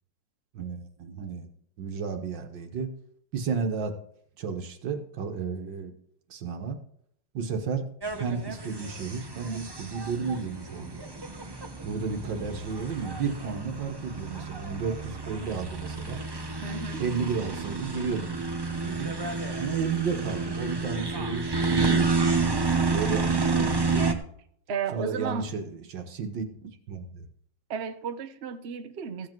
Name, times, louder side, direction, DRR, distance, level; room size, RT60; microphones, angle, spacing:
voice 1, 0.5-1.5 1.8-2.9 3.3-4.0 4.4-5.9 6.3-6.8 7.3-7.9 8.1-11.0 11.8-16.2 17.0-19.1 19.6-22.5 22.9-23.7 24.9-27.3, right 5 dB, 80° right, 6 dB, 2.0 m, -33 dB
sound 1, 8.0-24.1, right 4 dB, 20° right, 0.7 m, -30 dB
voice 2, 16.6-17.0 24.7-25.5 27.7-29.3, right 6 dB, 45° right, 8 dB, 0.9 m, -33 dB
15.5 x 7.7 x 4.6 m, 0.66 s
omnidirectional pair, 2.0 m